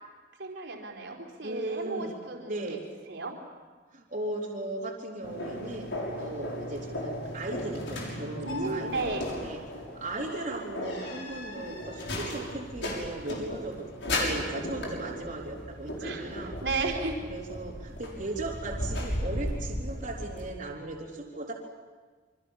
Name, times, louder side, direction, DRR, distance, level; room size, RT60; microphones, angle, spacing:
voice 1, 0.4-2.8 3.1-3.4 8.4-9.2 16.0-16.2 16.6-17.2, right 3 dB, 70° right, 1 dB, 4.4 m, -33 dB
voice 2, 1.4-2.8 3.9-5.9 6.2-9.6 10.0-13.9 14.2-16.5 17.3-21.5, right 2 dB, 45° right, -4 dB, 3.7 m, -37 dB
sound 1, 5.2-20.5, left 1 dB, 70° left, 6.5 m, -36 dB
28.0 x 25.0 x 7.3 m, 1.4 s
head